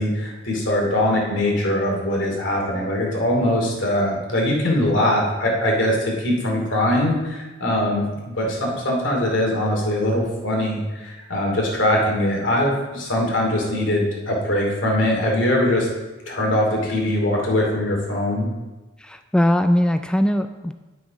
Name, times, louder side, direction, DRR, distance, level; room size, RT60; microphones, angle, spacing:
voice 1, 0.0-8.0 8.4-15.9 16.3-18.5, left 1 dB, 80° left, -1 dB, 2.5 m, -22 dB
voice 2, 19.0-20.7, equal, 5° left, 8 dB, 0.3 m, -20 dB
10.0 x 6.2 x 5.1 m, 1.2 s
head